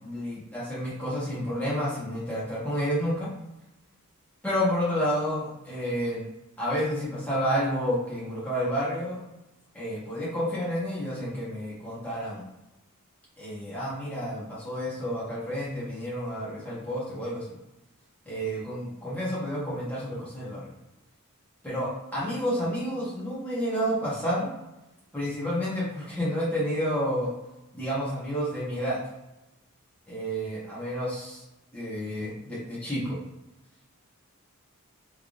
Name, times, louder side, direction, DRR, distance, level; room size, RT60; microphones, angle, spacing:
voice 1, 0.0-3.3 4.4-6.2 6.6-9.2 9.7-12.4 13.4-17.5 18.2-20.7 21.6-24.5 25.1-27.3 27.7-29.0 30.1-31.4 31.7-33.2, equal, 5° left, -8 dB, 1.2 m, -30 dB
3.3 x 3.2 x 2.6 m, 0.95 s
head